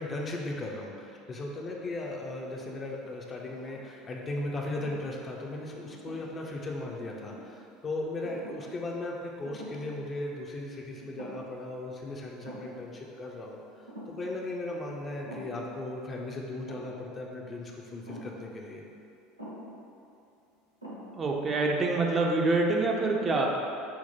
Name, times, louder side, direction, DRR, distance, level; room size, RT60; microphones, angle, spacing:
voice 1, 0.0-18.8, left 2 dB, 30° left, -1 dB, 0.5 m, -37 dB
sound 1, 2.3-2.9 3.4-4.2 4.7-5.0 5.8-6.5 7.0-7.6 8.2-8.8 9.0-9.1 9.4-10.0 10.3-10.4 11.0-11.6 11.9-12.0 12.4-12.8 13.9-14.3 15.3-15.7 16.7-17.0 18.1-18.4 19.4-19.8 20.4-20.5 20.8-21.3, right 1 dB, 90° right, 0.5 m, -46 dB
voice 2, 21.2-23.5, right 3 dB, 30° right, 0 dB, 0.4 m, -26 dB
5.8 x 2.1 x 2.8 m, 2.6 s
figure-of-eight pair, 70°, 0 cm